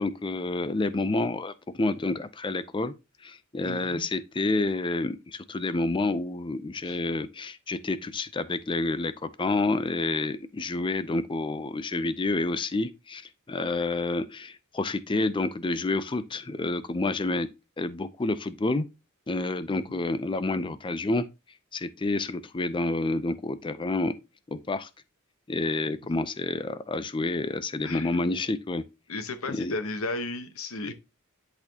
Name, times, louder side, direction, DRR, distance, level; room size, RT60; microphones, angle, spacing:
voice 1, 0.0-2.9 3.2-17.5 17.8-18.9 19.3-21.3 21.7-24.2 24.5-24.9 25.5-28.8 29.5-29.7, left 2 dB, 25° left, 0.5 m, -29 dB
voice 2, 3.6-4.0 6.8-7.0 19.7-20.0 27.8-28.2 29.1-30.9, left 2 dB, 75° left, 1.0 m, -34 dB
10.5 x 4.2 x 2.8 m
head